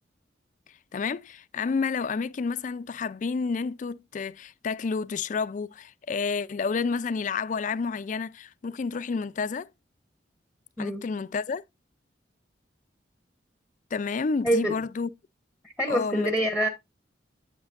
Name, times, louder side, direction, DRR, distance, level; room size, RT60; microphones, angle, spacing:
voice 1, 0.9-9.7 10.8-11.6 13.9-15.1 15.9-16.3, left 5 dB, 40° left, 0.4 m, -30 dB
voice 2, 15.6-16.7, right 1 dB, 5° right, 0.9 m, -26 dB
8.0 x 7.8 x 2.5 m
head